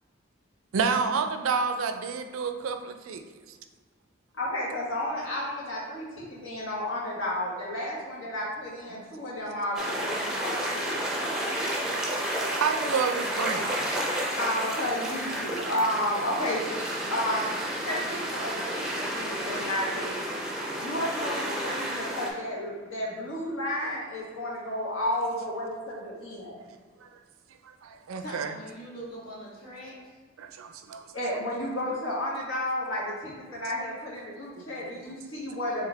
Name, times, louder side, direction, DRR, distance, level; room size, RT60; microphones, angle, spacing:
voice 1, 0.7-3.2 8.9-9.0 12.6-14.0 27.0-27.1 27.6-28.5 30.4-31.0 34.6-34.9, right 5 dB, 80° right, 7 dB, 0.4 m, -30 dB
voice 2, 4.4-11.0 14.4-17.4 17.8-20.3 20.8-26.7 31.1-35.9, left 1 dB, 75° left, -5 dB, 1.4 m, -32 dB
sound 1, 9.7-22.3, right 1 dB, 5° right, 0.5 m, -31 dB
voice 3, 27.8-30.2, equal, 45° left, -7 dB, 1.5 m, -43 dB
4.7 x 3.2 x 3.3 m, 1.5 s
head